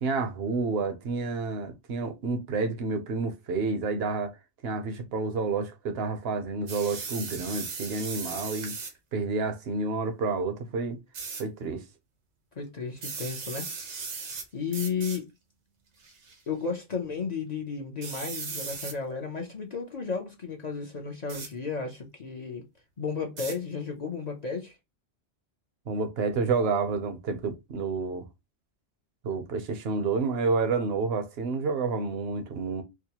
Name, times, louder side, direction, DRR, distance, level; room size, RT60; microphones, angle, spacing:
voice 1, 0.0-4.3 4.6-8.8 9.1-11.0 11.4-11.8 25.9-28.3 29.2-32.8, right 4 dB, 65° right, 0.9 m, -29 dB
sound 1, 6.7-9.0 11.1-11.4 13.0-14.4 14.7-15.2 16.0-16.3 18.0-18.9 21.3-21.5 23.4-23.5, right 5 dB, 85° right, 1.2 m, -37 dB
voice 2, 12.5-13.7 14.5-15.3 16.5-22.6 23.0-24.8, left 5 dB, 45° left, 0.7 m, -33 dB
4.7 x 2.1 x 2.8 m
omnidirectional pair, 1.2 m